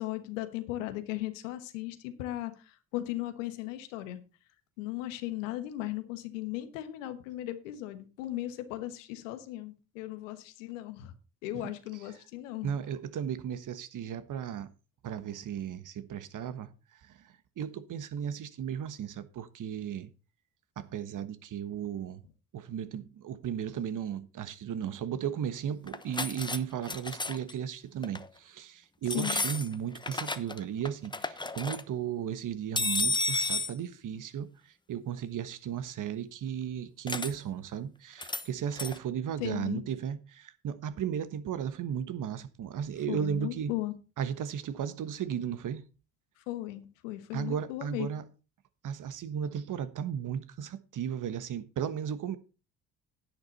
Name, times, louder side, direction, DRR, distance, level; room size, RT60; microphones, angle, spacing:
voice 1, 0.0-4.2 4.8-11.2 11.4-12.7 29.1-29.4 39.4-39.8 43.1-43.9 46.4-48.1, left 15 dB, 85° left, 1.3 m, -37 dB
voice 2, 12.6-14.7 15.0-20.1 20.8-22.2 22.5-43.7 44.2-45.8 47.3-48.2 48.8-52.4, right 8 dB, 55° right, 1.3 m, -35 dB
sound 1, 25.9-26.6 26.8-27.5 28.0-28.3 29.1-30.6 30.9-31.8 32.8-33.7 37.1-37.3 38.2-38.5 38.7-39.0, left 3 dB, 10° left, 0.9 m, -32 dB
10.5 x 9.3 x 4.1 m
hypercardioid pair, 55°, 37 cm